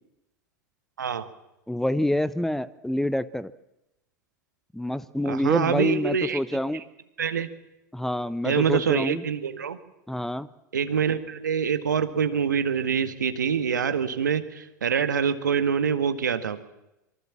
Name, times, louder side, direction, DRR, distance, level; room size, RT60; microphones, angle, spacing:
voice 1, 1.0-1.3 5.3-6.8 7.2-7.5 8.4-9.8 10.7-16.6, right 7 dB, 80° right, 10 dB, 1.9 m, -25 dB
voice 2, 1.7-3.5 4.7-6.8 7.9-9.2 10.1-10.5, left 1 dB, 5° left, 16 dB, 0.9 m, -27 dB
25.5 x 24.0 x 7.5 m, 0.93 s
hypercardioid pair, 90°, 10 cm